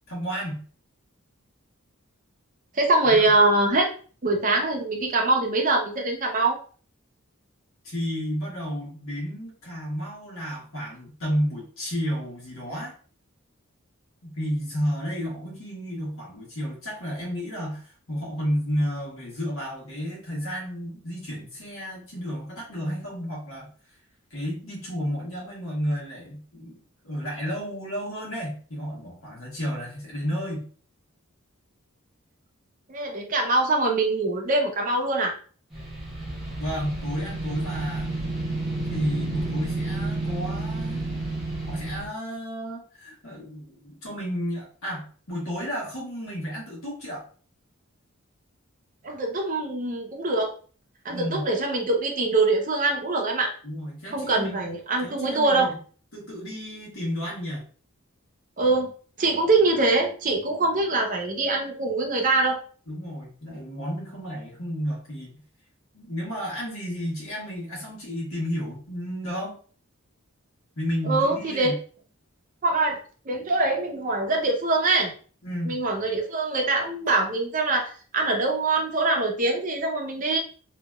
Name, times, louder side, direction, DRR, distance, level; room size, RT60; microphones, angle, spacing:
voice 1, 0.1-0.6 3.1-3.3 7.8-12.9 14.2-23.7 24.3-26.8 27.0-30.7 36.6-38.2 38.9-41.3 41.7-47.3 51.1-51.4 53.6-54.6 55.0-55.8 56.1-57.6 62.9-65.3 65.9-69.6 70.8-71.8 75.4-75.8, equal, 75° left, -4 dB, 1.5 m, -32 dB
voice 2, 2.7-3.9 4.2-6.6 32.9-35.4 49.0-50.5 51.0-53.5 54.1-55.7 58.6-58.9 59.2-62.6 71.1-71.7 72.6-73.0 73.3-75.1 75.7-80.4, right 2 dB, 40° right, 1 dB, 0.6 m, -23 dB
sound 1, 35.7-42.1, right 2 dB, ahead, 1.0 m, -30 dB
2.9 x 2.8 x 2.3 m, 0.41 s
head